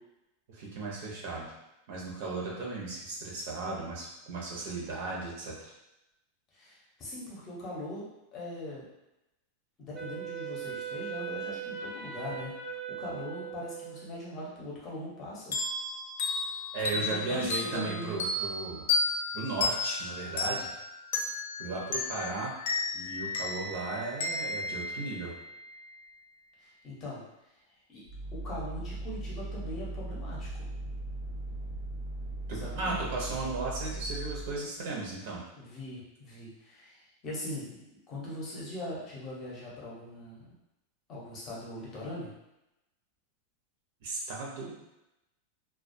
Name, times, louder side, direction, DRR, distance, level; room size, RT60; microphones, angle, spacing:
voice 1, 0.5-1.5 1.9-5.5 16.7-18.9 19.3-20.7 21.6-22.5 22.9-25.3 32.5-35.4 44.0-44.7, right 3 dB, 60° right, -3 dB, 0.7 m, -35 dB
voice 2, 6.5-8.9 9.8-12.5 12.9-15.6 16.9-18.2 26.6-27.2 27.9-28.0 28.3-30.7 32.5-33.0 35.6-40.5 41.1-42.3, left 1 dB, 25° left, -5 dB, 0.8 m, -41 dB
Wind instrument woodwind instrument, 9.9-14.3, right 6 dB, 15° right, 0.3 m, -39 dB
sound 1, 15.5-25.8, left 3 dB, 80° left, 0.4 m, -33 dB
sound 2, 28.1-34.6, right 2 dB, 85° right, 0.9 m, -38 dB
2.2 x 2.2 x 2.6 m, 0.92 s
supercardioid pair, 160°, 0 cm